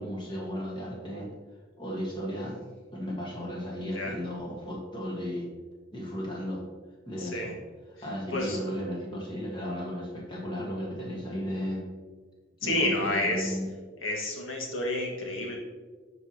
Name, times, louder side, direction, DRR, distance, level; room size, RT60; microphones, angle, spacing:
voice 1, 0.0-1.4 1.8-2.6 2.9-5.5 5.9-6.7 7.1-7.6 8.0-11.9 12.6-13.7, equal, 25° left, -3 dB, 1.5 m, -35 dB
voice 2, 12.6-13.6 14.0-15.6, left 1 dB, 85° left, -1 dB, 1.7 m, -29 dB
12.0 x 4.6 x 2.9 m, 1.4 s
head